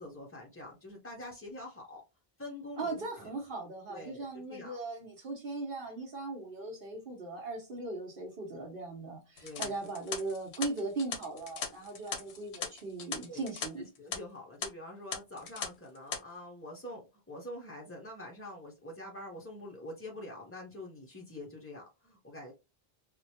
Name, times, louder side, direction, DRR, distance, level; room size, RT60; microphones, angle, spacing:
voice 1, 0.0-2.0 2.4-3.3 3.9-4.8 9.4-9.7 13.3-13.4 13.8-22.5, left 1 dB, 20° left, -1 dB, 0.4 m, -45 dB
voice 2, 2.8-13.9, right 3 dB, 60° right, -3 dB, 1.1 m, -39 dB
sound 1, 9.4-13.7 13.9-14.2 14.6-14.7 15.1-15.7 15.9-16.2, left 6 dB, 90° left, 1.0 m, -39 dB
4.3 x 2.2 x 2.8 m, 0.27 s
omnidirectional pair, 1.1 m